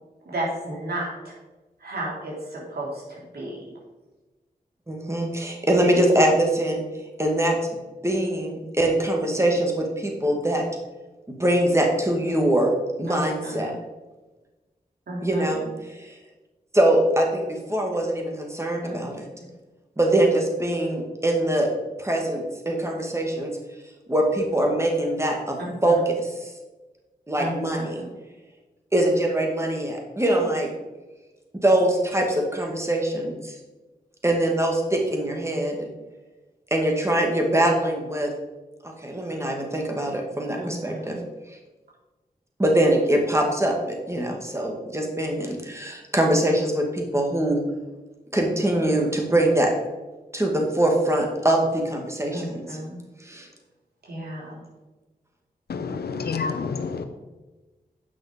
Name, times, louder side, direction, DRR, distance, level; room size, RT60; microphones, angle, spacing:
voice 1, 0.3-1.3 1.8-3.6 13.1-13.7 15.1-15.6 18.8-19.0 25.6-26.0 27.4-28.0 40.6-41.2 52.3-53.0 54.0-54.6, right 1 dB, 80° right, -4 dB, 3.4 m, -33 dB
voice 2, 4.9-6.8 7.2-7.6 8.0-10.6 11.4-12.7 13.0-13.7 15.2-16.2 16.7-19.2 20.0-21.7 22.0-23.6 24.1-26.5 27.3-28.0 28.9-30.7 31.6-33.6 34.2-35.9 36.7-38.3 38.8-41.2 42.6-47.6 48.3-49.7 50.3-52.6 53.2-53.5, right 1 dB, 15° right, 1 dB, 2.2 m, -23 dB
voice 3, 55.7-57.0, left 5 dB, 85° left, 9 dB, 0.8 m, -28 dB
9.1 x 5.9 x 5.2 m, 1.2 s
cardioid pair, 50°, 16 cm